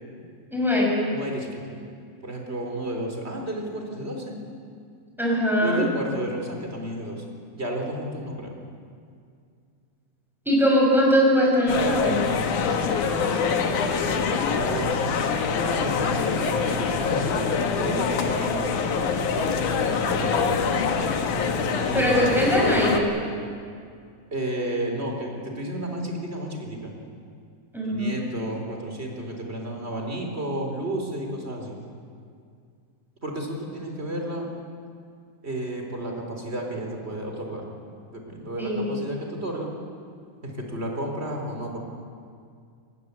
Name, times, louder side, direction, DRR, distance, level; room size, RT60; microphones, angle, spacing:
voice 1, 0.5-1.0 5.2-5.8 10.5-12.2 21.9-23.1 27.7-28.1 38.6-39.0, equal, ahead, -4 dB, 7.4 m, -21 dB
voice 2, 1.1-1.8 2.2-4.4 5.6-7.2 7.5-8.6 13.2-14.1 14.5-14.9 15.8-18.8 19.7-20.6 21.7-22.1 24.3-26.9 27.8-31.8 33.2-34.5 35.4-37.6 38.1-39.7 40.4-41.8, right 1 dB, 20° right, 2 dB, 3.9 m, -32 dB
sound 1, 11.7-23.0, left 5 dB, 70° left, 3.0 m, -25 dB
25.0 x 21.0 x 8.3 m, 2.3 s
omnidirectional pair, 3.7 m